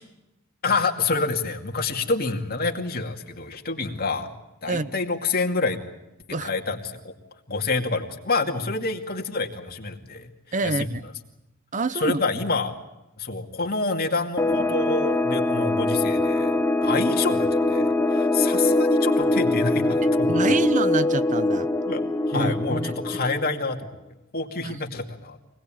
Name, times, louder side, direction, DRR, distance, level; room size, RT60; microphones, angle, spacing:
voice 1, 0.6-4.3 4.6-5.8 6.3-7.1 7.5-10.3 10.6-11.1 11.9-12.8 13.2-20.6 21.9-23.9 24.3-25.4, left 3 dB, 45° left, 2.4 m, -27 dB
voice 2, 10.5-11.0 11.7-12.2 20.3-21.7 22.3-22.9 24.6-24.8, right 3 dB, 35° right, 0.8 m, -27 dB
sound 1, 14.4-23.7, left 2 dB, 15° left, 1.0 m, -23 dB
25.0 x 19.5 x 9.0 m
head